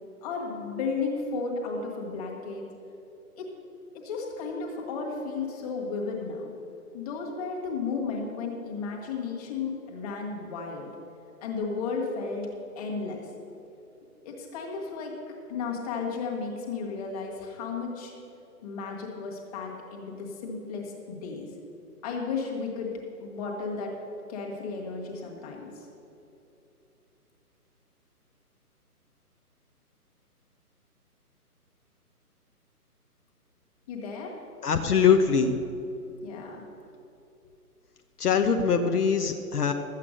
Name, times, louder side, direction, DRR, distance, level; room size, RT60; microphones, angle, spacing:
voice 1, 0.2-2.6 3.4-3.5 3.9-6.5 6.9-10.9 11.4-12.5 12.8-13.3 14.2-15.1 15.5-18.1 18.6-21.5 22.0-22.9 23.2-23.9 24.3-25.7 33.9-34.4 36.2-36.6, left 4 dB, 25° left, -1 dB, 1.7 m, -33 dB
voice 2, 34.6-35.6 38.2-39.7, left 6 dB, 75° left, 6 dB, 1.0 m, -22 dB
12.5 x 8.4 x 6.5 m, 2.8 s
figure-of-eight pair, 145°, 47 cm